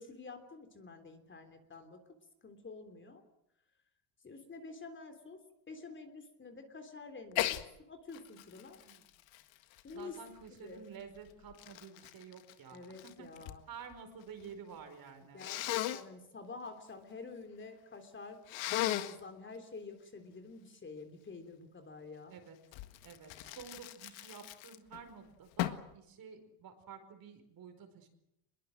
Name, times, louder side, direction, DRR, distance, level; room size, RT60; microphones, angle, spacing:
voice 1, 0.0-2.1 2.4-3.2 4.2-8.8 9.8-10.2 10.6-10.8 12.7-13.6 15.3-18.4 18.7-22.3, left 4 dB, 25° left, 6 dB, 3.3 m, -49 dB
Sneeze, 7.3-7.6 8.1-10.5 11.2-13.6 13.9-14.5 15.4-16.0 18.5-19.2 22.7-25.0 25.6-25.9, left 15 dB, 65° left, 1.8 m, -37 dB
voice 2, 9.9-13.3 13.7-15.5 22.3-22.6 23.0-28.1, right 6 dB, 45° right, 7 dB, 4.9 m, -51 dB
25.0 x 22.0 x 7.7 m, 0.83 s
cardioid pair, 125°, 50 cm